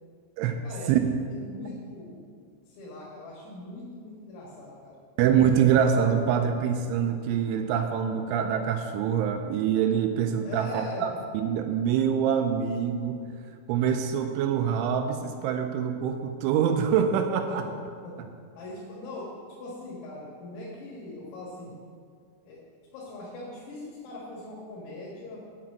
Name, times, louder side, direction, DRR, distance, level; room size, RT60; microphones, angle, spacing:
voice 1, 1.3-2.2 2.7-5.0 10.4-11.1 17.5-17.6 18.0-18.2 18.6-19.3 19.6-21.7 22.4-22.6 22.9-25.4, left 2 dB, 90° left, -5 dB, 4.5 m, -41 dB
voice 2, 5.2-13.2 13.7-17.6, right 8 dB, 85° right, 6 dB, 2.8 m, -25 dB
9.3 x 6.0 x 7.6 m, 2.1 s
omnidirectional pair, 5.8 m